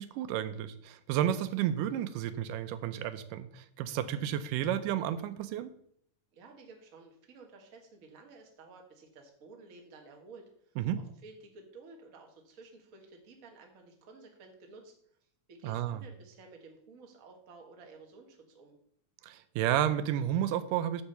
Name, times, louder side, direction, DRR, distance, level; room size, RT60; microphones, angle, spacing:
voice 1, 0.0-5.7 10.8-11.0 15.6-16.0 19.2-21.0, right 11 dB, 90° right, 12 dB, 2.2 m, -31 dB
voice 2, 6.3-18.7, right 3 dB, 45° right, 2 dB, 1.2 m, -53 dB
8.8 x 4.6 x 6.7 m, 0.67 s
omnidirectional pair, 3.7 m